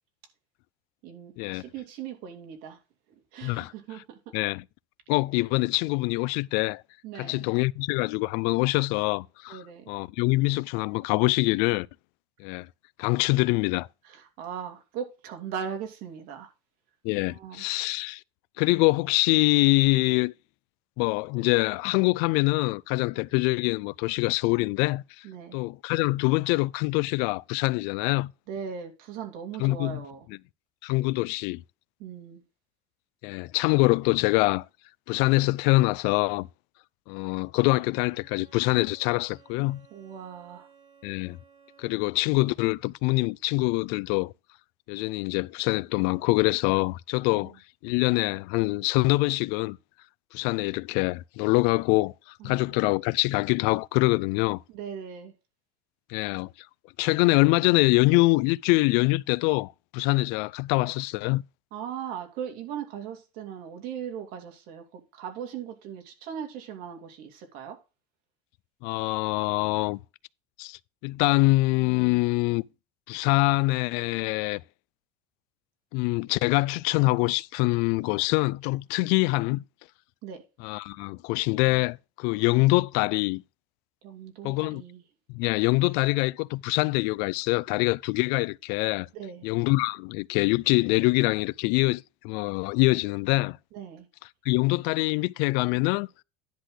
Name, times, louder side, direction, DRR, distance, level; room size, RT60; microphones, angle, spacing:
voice 1, 1.0-2.8 3.1-4.4 7.0-7.5 9.5-9.9 14.0-16.5 17.2-17.7 25.2-25.6 28.5-30.3 32.0-32.4 39.9-40.7 47.3-47.6 52.4-52.8 54.7-55.3 61.7-67.8 80.2-80.4 84.0-85.0 89.1-89.5 93.7-94.1, right 8 dB, 55° right, 2.8 m, -39 dB
voice 2, 3.4-3.7 4.3-4.6 5.1-6.8 7.2-11.9 12.4-12.7 13.0-13.9 17.0-18.2 18.6-20.3 21.0-25.2 25.5-28.3 29.6-30.0 30.8-31.6 33.2-34.7 35.1-36.5 37.1-39.8 41.0-41.4 41.8-44.3 44.9-47.5 47.8-49.8 50.3-52.1 52.4-54.6 56.1-56.5 57.0-61.4 68.8-70.0 70.6-72.6 73.1-74.6 75.9-79.6 80.6-83.4 84.4-84.8 85.3-89.1 89.4-93.6 94.5-96.1, left 23 dB, 60° left, 0.4 m, -24 dB
Bowed string instrument, 37.9-42.4, right 6 dB, 35° right, 4.7 m, -58 dB
10.5 x 4.0 x 6.2 m
cardioid pair, 155°, 18 cm